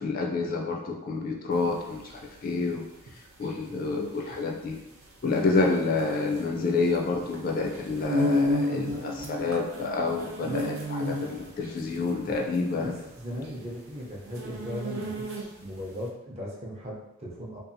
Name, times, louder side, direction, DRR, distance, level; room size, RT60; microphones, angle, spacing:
voice 1, 0.0-2.0 2.4-2.8 3.4-4.8 5.2-12.9, left 3 dB, 40° left, 0 dB, 0.3 m, -28 dB
sound 1, 1.6-15.8, left 1 dB, 75° right, 0.6 m, -32 dB
voice 2, 12.8-17.6, equal, 30° right, -4 dB, 0.5 m, -38 dB
2.7 x 2.3 x 2.5 m, 0.94 s
head